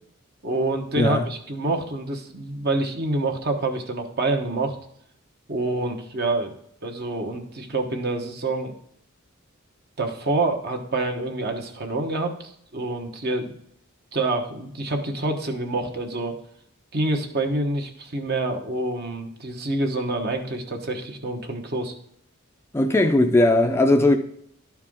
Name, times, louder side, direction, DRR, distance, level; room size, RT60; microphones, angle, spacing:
voice 1, 0.4-4.8 5.5-6.5 6.8-8.7 10.0-13.5 14.1-16.3 16.9-21.9, right 2 dB, 50° right, 1.1 m, -27 dB
voice 2, 22.7-24.2, left 2 dB, 10° left, 0.5 m, -18 dB
11.5 x 4.6 x 3.6 m
head